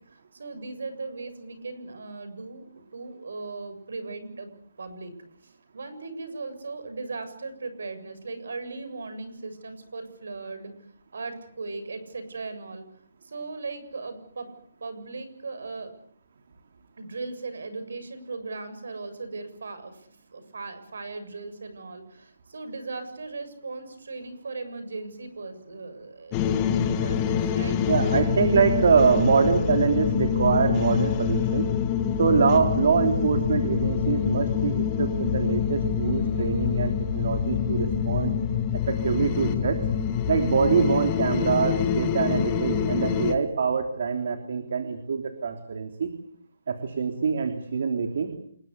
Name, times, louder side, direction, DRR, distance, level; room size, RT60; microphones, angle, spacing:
voice 1, 0.1-2.7 2.9-4.5 4.8-5.1 5.4-10.7 11.1-12.8 13.2-14.5 14.8-15.9 17.0-27.8, right 3 dB, 70° right, 11 dB, 7.3 m, -38 dB
sound 1, 26.3-43.3, left 8 dB, 15° left, 1.6 m, -26 dB
voice 2, 27.9-31.7 32.2-38.3 38.7-39.8 40.3-46.1 46.7-48.3, right 5 dB, 50° right, 6 dB, 3.3 m, -24 dB
28.5 x 21.5 x 8.1 m, 0.63 s
hypercardioid pair, 175°, 0 cm